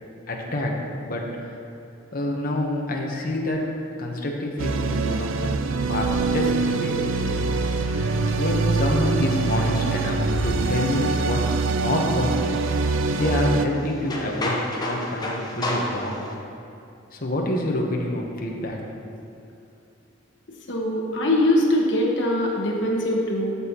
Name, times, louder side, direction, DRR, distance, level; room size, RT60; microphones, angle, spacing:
voice 1, 0.3-0.8 1.1-1.6 2.1-3.7 4.0-7.4 8.3-16.2 17.1-18.8 19.1-19.2, left 1 dB, 50° left, -1 dB, 1.1 m, -27 dB
sound 1, 4.6-13.7, right 3 dB, 85° right, 0.4 m, -24 dB
sound 2, 6.9-16.3, left 1 dB, 20° left, 0.9 m, -35 dB
voice 2, 20.7-23.6, left 1 dB, 65° left, -1 dB, 1.4 m, -22 dB
12.0 x 7.1 x 3.0 m, 2.7 s
head